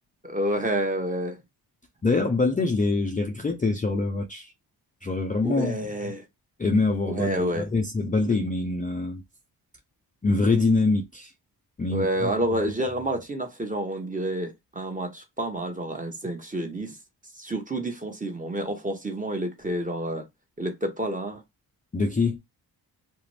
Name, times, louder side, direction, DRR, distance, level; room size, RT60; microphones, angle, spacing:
voice 1, 0.2-1.4 5.4-6.2 7.1-7.7 8.2-8.3 11.9-16.9 17.4-20.3 20.6-21.4, right 1 dB, 20° right, 0.9 m, -29 dB
voice 2, 2.0-4.5 5.0-5.8 6.6-9.2 10.2-11.3 11.8-12.6 21.9-22.4, left 3 dB, 20° left, 0.5 m, -25 dB
2.5 x 2.1 x 3.2 m
supercardioid pair, 55°, 44 cm